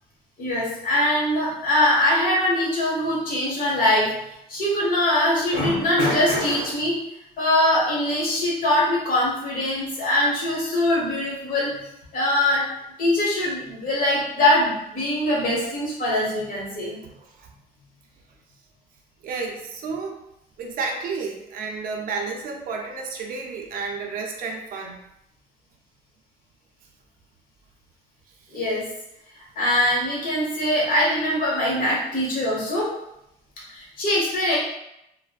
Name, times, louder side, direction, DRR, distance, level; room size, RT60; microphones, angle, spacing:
voice 1, 0.4-4.1 4.5-7.0 7.4-11.7 12.1-12.6 13.0-17.0 28.5-28.9 29.6-32.9 33.7-34.6, left 1 dB, 55° left, -4 dB, 1.2 m, -22 dB
voice 2, 17.0-17.5 19.2-20.2 20.6-25.0 28.5-28.6, right 4 dB, 55° right, 1 dB, 0.5 m, -31 dB
3.1 x 2.1 x 2.3 m, 0.83 s
cardioid pair, 110°, 17 cm